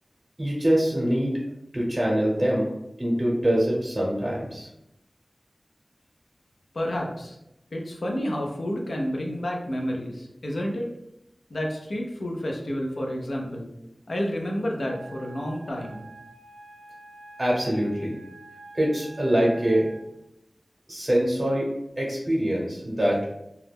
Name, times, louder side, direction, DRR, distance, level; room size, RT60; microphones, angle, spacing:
voice 1, 0.4-1.3 1.7-2.7 3.0-4.7 17.4-18.2 18.7-19.9 20.9-21.7 22.0-23.2, equal, 35° right, -4 dB, 0.7 m, -24 dB
voice 2, 6.7-7.4 7.7-10.9 11.5-13.7 14.1-16.1, equal, 80° left, 0 dB, 0.4 m, -30 dB
Wind instrument woodwind instrument, 14.8-20.1, right 2 dB, 80° right, 0.4 m, -47 dB
2.2 x 2.1 x 3.3 m, 0.85 s
wide cardioid pair, 45°, 0 cm